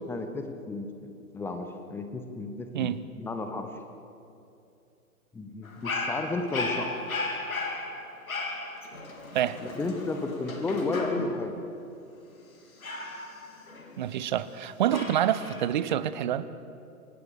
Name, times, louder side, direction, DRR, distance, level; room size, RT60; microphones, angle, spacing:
voice 1, 0.0-3.7 5.3-7.0 9.6-11.6, left 3 dB, 5° left, 6 dB, 1.1 m, -33 dB
Dog, 5.6-11.5 12.8-14.3 14.9-15.6, left 2 dB, 65° left, 4.0 m, -35 dB
voice 2, 14.0-16.5, right 11 dB, 30° right, 15 dB, 0.8 m, -27 dB
26.0 x 19.0 x 6.8 m, 2.7 s
figure-of-eight pair, 120°, 45 cm